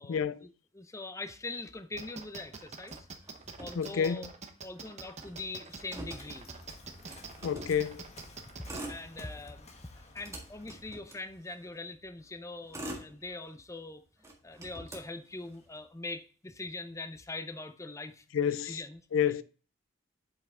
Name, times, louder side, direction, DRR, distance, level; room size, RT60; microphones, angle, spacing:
voice 1, 0.0-3.0 3.6-4.3 4.6-6.5 8.9-9.7 10.1-14.0 14.4-18.2 18.7-19.0, left 2 dB, 15° left, 0.6 m, -42 dB
sound 1, 2.0-8.8, right 4 dB, 35° right, 1.0 m, -45 dB
Motor vehicle (road), 2.8-4.5 4.8-4.9 5.1-7.9 8.5-9.6 10.0-11.8 12.4-13.8 14.2-15.8, right 1 dB, 15° right, 1.8 m, -46 dB
voice 2, 3.8-4.3 7.4-8.0 18.3-18.8 19.1-19.4, left 7 dB, 75° left, 0.4 m, -29 dB
Waves surf, 5.7-10.9, left 2 dB, 35° left, 1.2 m, -53 dB
7.5 x 5.7 x 3.7 m
head